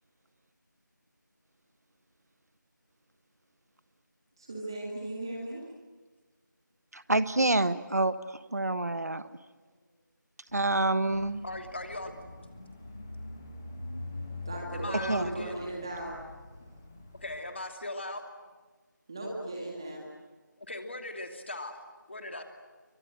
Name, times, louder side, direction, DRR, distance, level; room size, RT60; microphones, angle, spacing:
voice 1, 4.4-5.6 14.5-16.2 19.1-20.0, right 1 dB, 15° right, -2 dB, 2.0 m, -37 dB
voice 2, 6.9-9.2 10.5-11.4 15.1-15.5, right 2 dB, 55° right, 13 dB, 1.4 m, -28 dB
sound 1, 10.5-17.4, left 2 dB, 10° left, 1.1 m, -44 dB
voice 3, 11.4-12.1 14.7-15.6 17.2-18.2 20.6-21.8 22.1-22.4, left 2 dB, 35° left, 5 dB, 2.8 m, -39 dB
29.0 x 24.5 x 7.9 m, 1.3 s
figure-of-eight pair, 180°, 11 cm